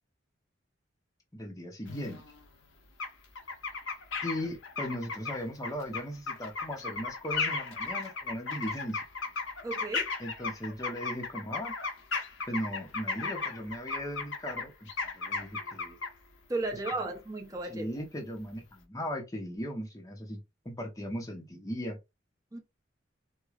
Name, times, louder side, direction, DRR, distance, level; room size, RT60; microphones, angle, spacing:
voice 1, 1.3-2.2 4.2-9.0 10.2-11.7 12.5-14.9 15.1-16.0 17.6-22.0, equal, 15° left, 0.7 m, -38 dB
sound 1, 1.9-2.4 3.0-3.1 3.3-16.1 16.9-17.0, left 4 dB, 75° left, 1.0 m, -35 dB
voice 2, 9.6-10.1 16.5-17.9 22.5-22.6, right 2 dB, 20° right, 0.7 m, -34 dB
4.6 x 2.2 x 2.4 m
head